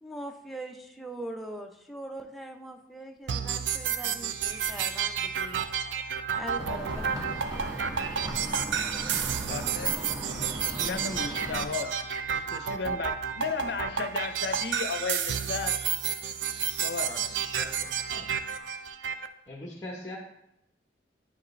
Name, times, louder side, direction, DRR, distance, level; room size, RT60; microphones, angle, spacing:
voice 1, 0.0-5.6 6.3-7.5, right 1 dB, ahead, 3 dB, 0.5 m, -41 dB
sound 1, 3.3-19.3, right 7 dB, 75° right, 0.4 m, -31 dB
sound 2, 6.6-11.6, right 1 dB, 20° right, 1.5 m, -37 dB
voice 2, 9.5-10.5 10.8-12.0 12.3-15.7 16.8-17.1, left 5 dB, 65° left, 9 dB, 0.5 m, -35 dB
voice 3, 17.6-18.3 19.5-20.2, left 1 dB, 15° left, -2 dB, 0.9 m, -42 dB
9.5 x 4.8 x 3.2 m, 0.83 s
head